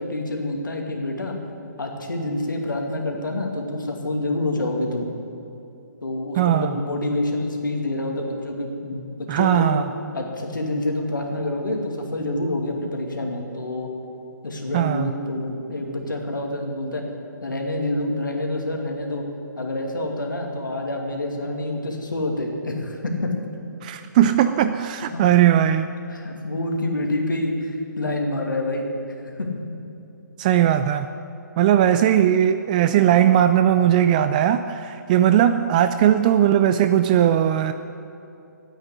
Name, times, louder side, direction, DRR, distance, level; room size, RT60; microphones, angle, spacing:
voice 1, 0.0-1.3 1.8-5.0 6.0-9.8 10.1-13.9 14.4-17.0 17.4-19.2 19.6-23.3 25.1-25.2 26.1-28.9 29.4-29.6, left 1 dB, 90° left, 1 dB, 2.4 m, -27 dB
voice 2, 6.4-6.7 9.3-9.9 14.7-15.1 23.8-25.9 30.4-31.1 31.6-37.7, right 11 dB, 25° right, 10 dB, 0.3 m, -18 dB
10.5 x 9.2 x 9.8 m, 2.8 s
hypercardioid pair, 145°, 10 cm